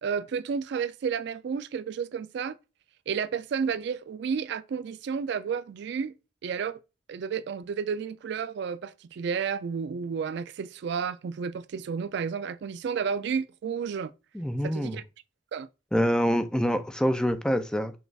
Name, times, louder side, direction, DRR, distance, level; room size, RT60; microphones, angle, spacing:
voice 1, 0.0-2.6 3.1-6.1 6.4-6.8 7.1-14.1 14.6-15.0 15.5-15.7, right 6 dB, 65° right, 0.3 m, -31 dB
voice 2, 14.3-15.0 15.9-17.9, equal, 5° left, 0.4 m, -26 dB
6.3 x 2.3 x 3.3 m
head